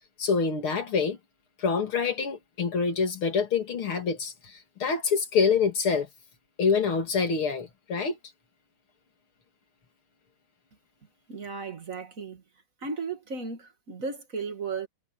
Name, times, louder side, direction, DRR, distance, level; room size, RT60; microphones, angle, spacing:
voice 1, 0.2-1.2 1.6-4.3 4.8-6.1 6.6-8.2, left 5 dB, 75° left, 3.6 m, -26 dB
voice 2, 11.3-12.4 12.8-14.9, right 4 dB, 35° right, 2.7 m, -35 dB
omnidirectional pair, 2.4 m